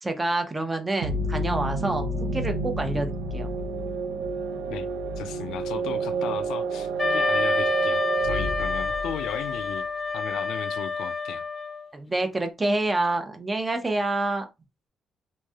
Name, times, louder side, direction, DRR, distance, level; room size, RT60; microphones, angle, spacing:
voice 1, 0.0-3.5 11.9-14.4, right 2 dB, 20° right, 0.7 m, -27 dB
sound 1, 1.0-9.6, right 3 dB, 85° right, 0.4 m, -29 dB
voice 2, 5.2-9.8 10.1-11.4, left 9 dB, 85° left, 0.3 m, -36 dB
Wind instrument woodwind instrument, 7.0-11.9, left 4 dB, 30° left, 0.6 m, -28 dB
3.1 x 2.6 x 2.3 m
cardioid pair, 90°, 0 cm